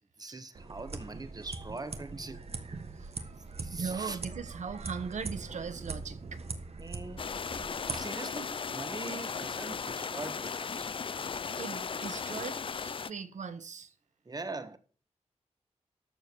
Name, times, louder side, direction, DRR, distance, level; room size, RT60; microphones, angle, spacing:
voice 1, 0.2-2.5 3.6-4.2 6.8-7.3 7.9-10.9 14.2-14.8, right 3 dB, 35° right, 1.5 m, -42 dB
sound 1, 0.5-8.0, right 3 dB, 60° right, 1.6 m, -41 dB
voice 2, 3.7-6.4 11.2-13.9, right 6 dB, 90° right, 1.3 m, -39 dB
sound 2, 7.2-13.1, left 6 dB, 45° left, 0.4 m, -36 dB
13.0 x 7.1 x 4.6 m
wide cardioid pair, 100°, 12 cm